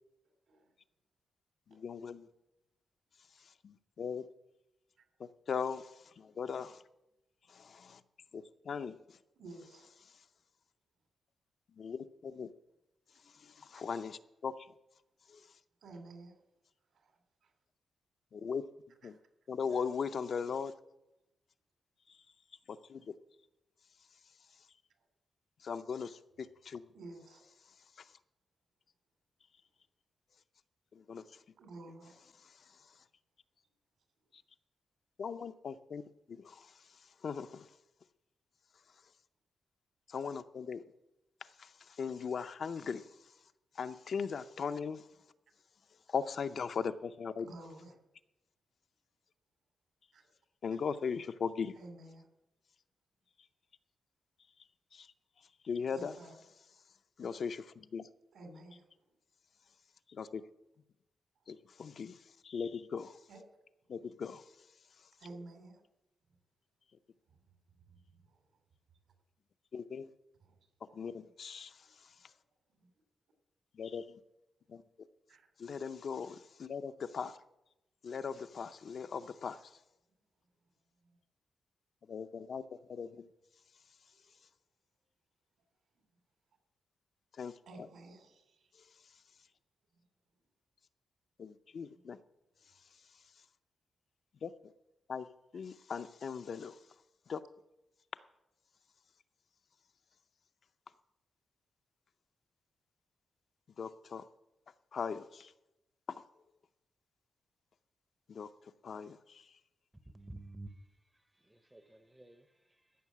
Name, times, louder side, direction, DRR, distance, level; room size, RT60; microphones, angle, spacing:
voice 1, 1.7-2.3 3.4-4.3 5.2-6.8 7.5-8.0 8.3-9.2 11.8-12.5 13.3-14.7 15.3-15.5 18.3-18.6 19.0-19.2 19.5-20.7 22.1-22.2 22.7-23.1 25.6-26.8 28.0-28.1 30.9-31.4 32.5-32.8 35.2-37.7 40.1-40.8 41.4-43.1 43.7-45.0 46.1-47.5 50.6-51.8 54.9-55.1 55.6-56.1 57.2-58.1 60.1-60.4 61.5-63.2 63.9-64.5 69.7-70.1 70.9-72.1 73.7-74.2 74.7-74.8 75.6-77.4 78.0-79.8 82.1-83.3 87.4-87.5 91.4-92.2 94.4-94.5 95.1-95.3 95.5-96.8 97.3-97.4 103.8-104.2 104.9-105.5 106.1-106.2 108.3-108.5 108.8-109.5, left 6 dB, 50° left, 10 dB, 0.5 m, -39 dB
voice 2, 9.4-9.9 15.8-16.4 16.9-17.5 19.0-19.2 25.0-25.1 26.9-27.4 31.6-32.2 47.4-48.0 50.1-50.3 51.7-52.3 55.9-56.4 58.3-58.9 61.4-61.6 63.3-63.4 65.2-65.8 67.3-67.4 67.8-68.4 70.4-70.6 70.8-71.3 72.2-72.3 72.7-72.9 75.3-75.5 81.0-81.2 85.9-86.1 87.7-88.7 91.9-92.0, right 2 dB, 75° right, 5 dB, 2.9 m, -52 dB
voice 3, 110.1-110.8 111.1-112.9, right 2 dB, 5° right, 9 dB, 0.6 m, -52 dB
14.0 x 6.5 x 8.4 m, 0.92 s
wide cardioid pair, 170°, 0 cm